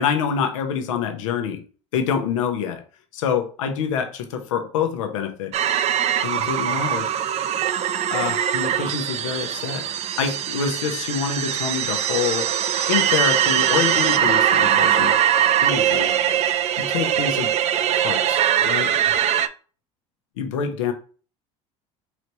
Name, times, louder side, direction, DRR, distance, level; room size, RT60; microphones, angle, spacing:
voice 1, 0.0-1.6 1.9-2.8 3.1-5.5 6.2-7.1 8.1-9.9 10.2-12.5 12.9-15.1 15.6-16.1 16.8-17.5 18.0-18.9 20.4-20.9, left 7 dB, 85° left, 6 dB, 0.8 m, -26 dB
sound 1, 5.5-19.5, right 10 dB, 45° right, 0.4 m, -21 dB
4.0 x 3.1 x 3.0 m, 0.38 s
hypercardioid pair, 80°, 16 cm